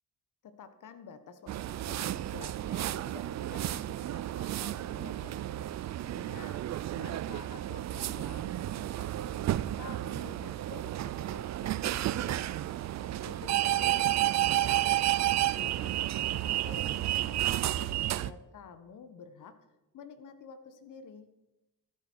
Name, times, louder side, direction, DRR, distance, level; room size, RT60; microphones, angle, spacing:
voice 1, 0.4-5.7 6.1-12.4 13.0-14.9 15.3-19.6 19.9-21.3, left 6 dB, 60° left, 11 dB, 1.3 m, -50 dB
sound 1, 1.5-18.3, right 13 dB, 50° right, 0.5 m, -31 dB
14.0 x 8.6 x 4.6 m, 0.99 s
supercardioid pair, 60°, 35 cm